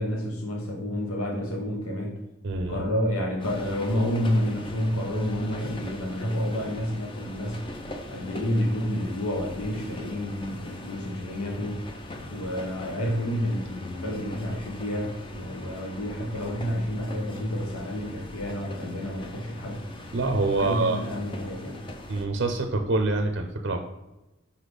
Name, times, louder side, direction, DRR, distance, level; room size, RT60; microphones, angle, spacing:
voice 1, 0.0-2.2 2.7-7.6 8.1-11.8 12.3-19.8 20.6-21.8, equal, 90° left, 0 dB, 1.2 m, -29 dB
voice 2, 2.4-2.8 20.1-21.0 22.1-23.8, right 3 dB, 55° right, 5 dB, 0.5 m, -26 dB
sound 1, 3.4-22.3, left 1 dB, 25° left, 0.6 m, -41 dB
5.6 x 4.1 x 4.9 m, 0.99 s
head